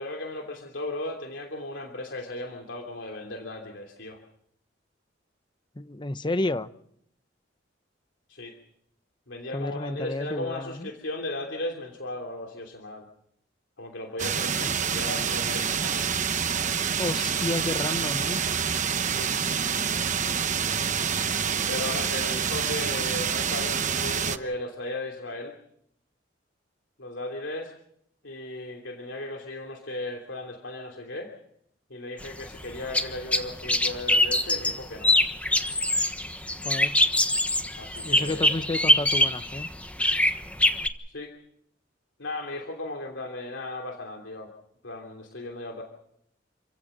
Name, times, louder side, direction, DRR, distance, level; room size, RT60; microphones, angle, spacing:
voice 1, 0.0-4.2 8.3-8.6 9.3-13.1 13.8-16.0 19.1-19.3 21.7-25.5 27.0-27.7 28.2-31.3 31.9-35.1 37.8-38.8 41.1-41.3 42.2-44.5 44.8-45.8, left 2 dB, 75° left, 2 dB, 3.0 m, -36 dB
voice 2, 5.8-6.7 9.5-10.9 14.6-14.7 17.0-18.4 36.6-37.0 38.0-39.7, left 2 dB, 25° left, 13 dB, 0.8 m, -31 dB
sound 1, 14.2-24.4, right 7 dB, 40° right, 1.0 m, -27 dB
sound 2, 32.2-40.9, left 1 dB, 5° left, 1.3 m, -24 dB
28.0 x 16.0 x 6.7 m, 0.70 s
head